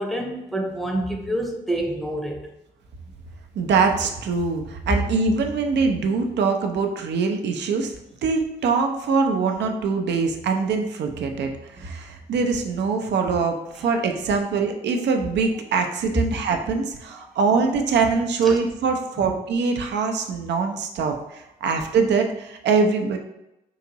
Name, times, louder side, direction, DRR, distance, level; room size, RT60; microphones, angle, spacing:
voice 1, 0.0-2.4 16.1-16.2 18.4-18.6 19.2-19.3, right 1 dB, ahead, 1 dB, 0.8 m, -27 dB
voice 2, 3.6-23.2, right 4 dB, 60° right, 4 dB, 0.6 m, -23 dB
3.8 x 2.5 x 2.9 m, 0.91 s
hypercardioid pair, 45°, 20 cm